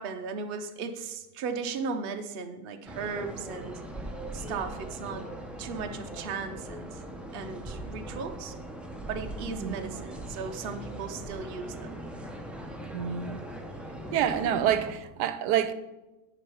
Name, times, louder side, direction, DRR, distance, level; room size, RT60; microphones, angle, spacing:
voice 1, 0.0-3.8 4.3-5.3 5.6-7.0 7.3-8.5 9.1-12.0 14.4-14.5, right 5 dB, 45° right, 0.8 m, -36 dB
sound 1, 2.9-14.9, right 1 dB, ahead, 0.5 m, -40 dB
voice 2, 12.9-13.4 14.1-15.7, right 10 dB, 90° right, 1.2 m, -27 dB
10.0 x 5.2 x 5.6 m
omnidirectional pair, 1.7 m